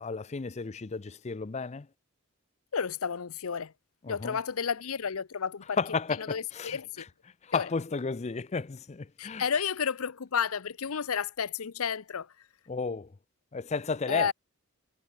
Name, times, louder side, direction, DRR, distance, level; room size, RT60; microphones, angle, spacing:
voice 1, 0.0-1.9 4.0-4.4 5.8-7.1 7.4-9.4 12.7-13.1 13.5-14.3, left 4 dB, 30° left, 0.5 m, -33 dB
voice 2, 2.7-3.7 4.1-5.8 6.3-7.0 7.5-7.7 9.2-12.3 14.1-14.3, left 6 dB, 70° left, 0.7 m, -31 dB
head